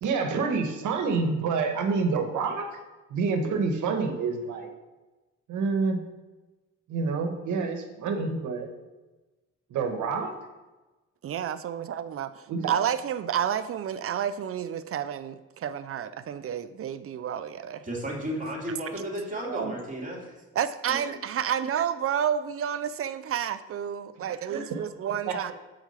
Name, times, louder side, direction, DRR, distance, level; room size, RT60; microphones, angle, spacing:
voice 1, 0.0-2.7 3.1-4.7 5.5-6.0 6.9-8.7 9.7-10.3 12.5-12.7 19.5-19.8 24.5-24.8 25.3-25.5, right 4 dB, 80° right, 1.3 m, -28 dB
voice 2, 11.2-17.8 20.6-25.5, right 9 dB, 50° right, 0.5 m, -30 dB
voice 3, 17.8-20.3 20.9-21.2, right 1 dB, 25° right, 2.8 m, -34 dB
6.3 x 5.0 x 6.8 m
cardioid pair, 90°, 30 cm